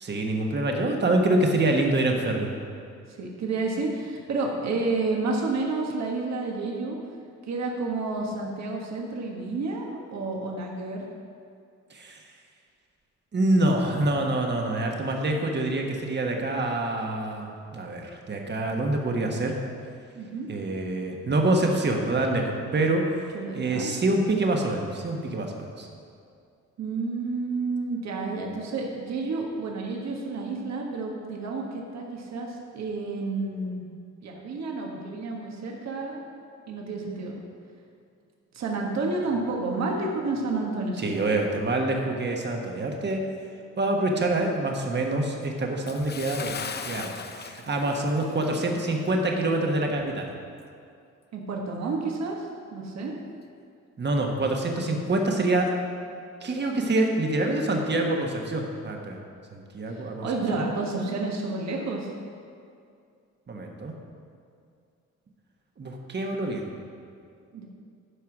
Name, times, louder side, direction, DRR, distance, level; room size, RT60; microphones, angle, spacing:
voice 1, 0.0-2.5 11.9-12.2 13.3-19.6 20.5-23.0 23.5-25.9 41.0-43.2 43.8-46.5 46.8-50.3 54.0-55.7 56.4-59.2 59.5-60.2 60.5-60.6 63.5-63.9 65.8-66.7, right 2 dB, 35° right, 1 dB, 1.4 m, -26 dB
voice 2, 3.1-7.0 7.5-11.1 20.1-20.5 23.3-23.9 26.8-33.8 34.2-36.2 36.7-37.3 38.5-41.3 51.3-53.1 59.8-62.1 67.5-67.7, right 3 dB, 60° right, -1 dB, 1.5 m, -30 dB
Bathtub (filling or washing) / Splash splatter, 45.9-48.7 49.0-49.2 49.8-49.9, left 6 dB, 35° left, 0.6 m, -38 dB
11.5 x 4.8 x 6.1 m, 2.4 s
cardioid pair, 90°, 30 cm